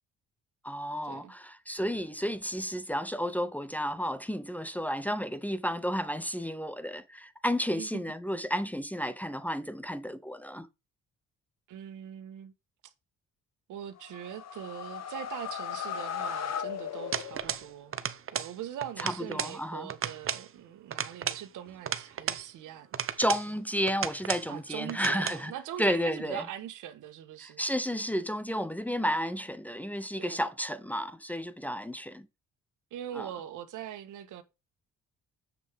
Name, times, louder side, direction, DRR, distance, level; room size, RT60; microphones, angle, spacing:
voice 1, 0.6-10.7 19.0-19.9 23.2-25.5 25.8-26.4 27.4-32.3 33.1-33.3, equal, 5° left, 0.7 m, -32 dB
voice 2, 11.7-12.5 13.7-18.0 18.3-23.0 24.5-27.6 30.2-30.4 32.9-34.4, right 10 dB, 85° right, 1.4 m, -42 dB
sound 1, 14.0-17.8, left 8 dB, 60° left, 1.2 m, -37 dB
sound 2, 17.1-17.7 17.9-18.5 18.8-19.6 19.9-20.5 20.9-22.5 22.9-23.5 23.9-24.5 24.9-25.4, right 8 dB, 45° right, 0.9 m, -34 dB
7.6 x 6.6 x 3.6 m
cardioid pair, 90°, 30 cm